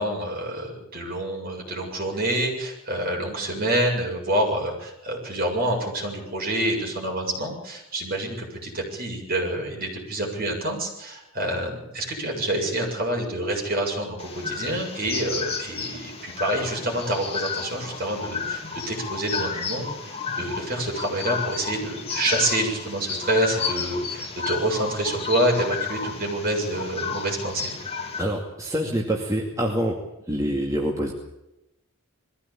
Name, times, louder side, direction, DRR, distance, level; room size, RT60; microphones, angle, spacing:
voice 1, 0.0-27.7, right 1 dB, 45° right, 0 dB, 7.4 m, -27 dB
sound 1, 14.2-28.2, left 5 dB, 30° left, 2.9 m, -32 dB
voice 2, 28.2-30.0 30.3-31.1, equal, 15° right, -1 dB, 2.4 m, -26 dB
21.5 x 16.0 x 8.6 m, 0.89 s
head